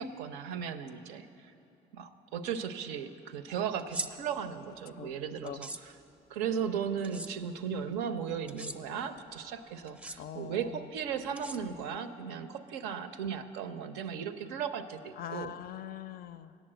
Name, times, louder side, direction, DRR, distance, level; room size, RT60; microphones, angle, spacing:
voice 1, 0.0-1.5 1.9-5.7 6.3-15.5, right 7 dB, 70° right, 9 dB, 0.5 m, -36 dB
sound 1, 3.8-4.1 5.5-5.8 7.0-7.3 8.5-8.8 9.9-10.2 11.4-12.0, right 2 dB, 5° right, 0.6 m, -39 dB
voice 2, 10.2-10.9 15.2-16.6, left 10 dB, 45° left, 13 dB, 0.4 m, -42 dB
8.9 x 7.2 x 7.7 m, 2.8 s
figure-of-eight pair, 45°, 21 cm